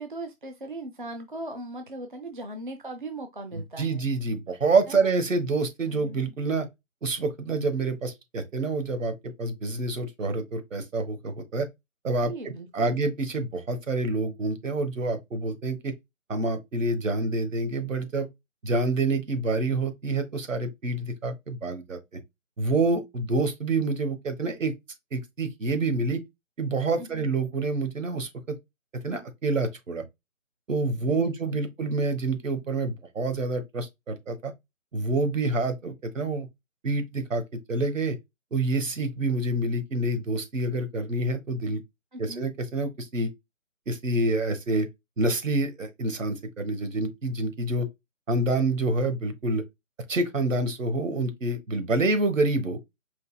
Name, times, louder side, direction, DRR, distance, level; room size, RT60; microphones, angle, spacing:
voice 1, 0.0-4.1 4.9-5.1 5.9-6.3 12.2-13.0 27.0-27.3 31.0-31.7 42.1-42.4, right 2 dB, 40° right, 0.5 m, -39 dB
voice 2, 3.8-6.7 7.0-11.7 12.0-12.3 12.7-15.9 16.3-18.3 18.6-22.0 22.6-24.7 25.1-26.2 26.6-28.5 29.0-30.0 30.7-34.5 34.9-36.5 36.8-37.4 37.7-38.2 38.5-41.8 42.2-43.3 43.9-44.9 45.2-47.9 48.3-49.6 50.1-52.8, right 2 dB, 70° right, 1.3 m, -27 dB
5.1 x 3.1 x 2.2 m
figure-of-eight pair, 165°, 40 cm